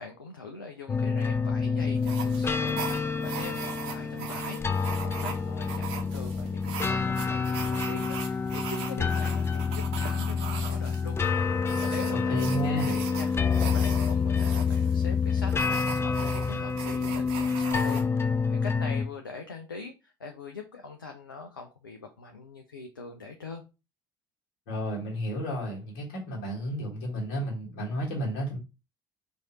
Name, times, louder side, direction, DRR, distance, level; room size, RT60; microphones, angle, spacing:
voice 1, 0.0-11.2 11.8-13.3 13.6-18.0 18.5-23.6, left 4 dB, 85° left, 0.5 m, -42 dB
sound 1, 0.9-19.1, left 5 dB, 25° left, 0.5 m, -28 dB
sound 2, 2.0-18.0, right 7 dB, 60° right, 0.8 m, -40 dB
voice 2, 12.1-13.0 24.7-28.6, right 1 dB, 60° left, 1.7 m, -32 dB
4.7 x 2.7 x 4.1 m
figure-of-eight pair, 55°, 11 cm